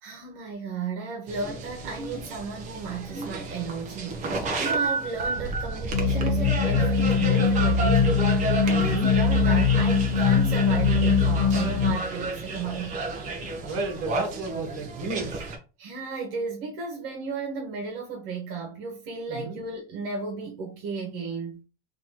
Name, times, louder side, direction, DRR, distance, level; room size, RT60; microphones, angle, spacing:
voice 1, 0.0-13.0 15.8-21.6, right 4 dB, 60° right, 1.6 m, -34 dB
sound 1, 1.3-15.6, right 3 dB, 25° right, 0.9 m, -32 dB
sound 2, 5.9-11.9, left 5 dB, 50° left, 1.3 m, -22 dB
voice 2, 8.7-9.1 13.7-15.5 19.3-19.6, right 3 dB, 45° right, 1.9 m, -33 dB
4.1 x 3.0 x 4.1 m
supercardioid pair, 165°, 31 cm